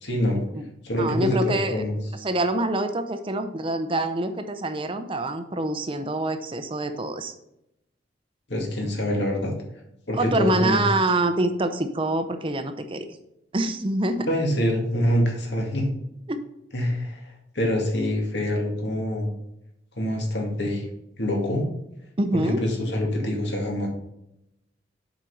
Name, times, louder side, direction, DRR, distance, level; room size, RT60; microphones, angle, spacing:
voice 1, 0.0-0.4 0.8-2.0 8.5-9.5 10.1-10.9 14.3-15.9 16.7-19.3 20.0-20.9 21.2-21.7 22.3-23.9, left 1 dB, 70° left, 1 dB, 2.2 m, -25 dB
voice 2, 1.0-1.8 2.2-7.3 10.2-13.0 13.5-14.3 16.3-16.4 22.2-22.6, right 2 dB, 30° right, 9 dB, 0.6 m, -25 dB
7.6 x 5.2 x 5.4 m, 0.82 s
head